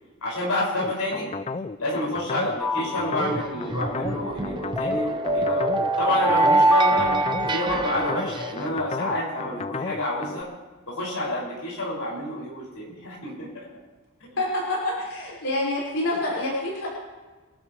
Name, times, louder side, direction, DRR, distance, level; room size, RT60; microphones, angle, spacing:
voice 1, 0.2-1.3 1.8-7.1 7.5-10.5 10.9-13.6 14.2-14.3, left 1 dB, 90° left, -4 dB, 6.2 m, -29 dB
sound 1, 0.8-10.4, left 4 dB, 30° left, 0.4 m, -33 dB
sound 2, 2.6-3.6 4.8-8.0, right 2 dB, 5° left, 3.0 m, -23 dB
sound 3, 3.2-8.7, right 2 dB, 20° right, 0.8 m, -32 dB
voice 2, 14.4-16.9, left 1 dB, 70° left, -5 dB, 5.6 m, -27 dB
26.0 x 12.0 x 3.3 m, 1.3 s
head